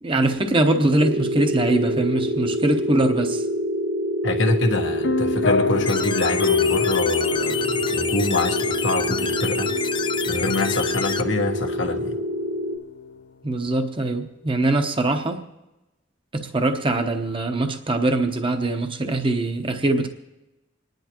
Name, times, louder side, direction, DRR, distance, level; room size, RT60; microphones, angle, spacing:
voice 1, 0.0-3.5 13.4-15.4 16.3-20.1, right 2 dB, 30° right, 6 dB, 0.9 m, -22 dB
sound 1, 1.0-12.8, equal, 50° right, 1.0 m, -26 dB
voice 2, 4.2-9.7 10.3-12.1, left 2 dB, 85° left, 4 dB, 1.4 m, -25 dB
sound 2, 5.0-13.1, left 5 dB, 65° left, 0.7 m, -28 dB
sound 3, 5.9-11.2, left 6 dB, 25° left, 0.4 m, -29 dB
26.5 x 10.5 x 3.0 m, 1.0 s
head